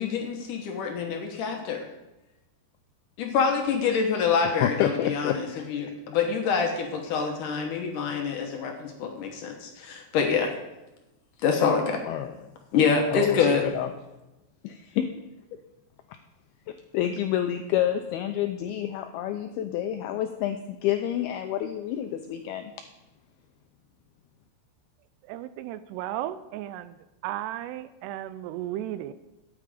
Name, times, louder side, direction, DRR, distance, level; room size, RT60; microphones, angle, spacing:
voice 1, 0.0-1.9 3.2-10.5 11.4-12.0 12.7-13.6, left 6 dB, 70° left, 2 dB, 2.1 m, -26 dB
voice 2, 4.4-5.7 7.1-7.3 12.1-12.4 13.1-13.9 14.6-15.1 16.7-22.6, left 11 dB, 90° left, 6 dB, 2.2 m, -29 dB
voice 3, 25.3-27.0 27.2-29.1, right 13 dB, 85° right, 14 dB, 2.4 m, -34 dB
13.0 x 9.1 x 5.0 m, 1.0 s
omnidirectional pair, 5.1 m